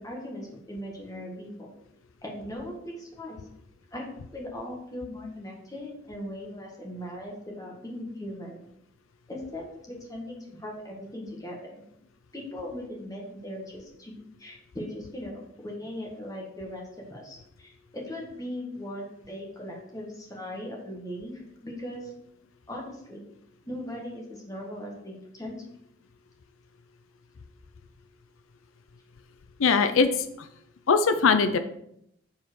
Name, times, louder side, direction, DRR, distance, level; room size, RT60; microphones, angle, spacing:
voice 1, 0.0-1.7 2.2-3.4 3.9-4.1 4.3-8.6 9.3-11.8 12.3-14.1 14.4-16.8 17.1-22.1 22.7-23.3 23.6-25.6, left 1 dB, 15° left, -2 dB, 1.6 m, -39 dB
voice 2, 29.6-30.5 30.9-31.6, left 5 dB, 90° left, 9 dB, 0.5 m, -21 dB
7.2 x 4.2 x 4.6 m, 0.75 s
head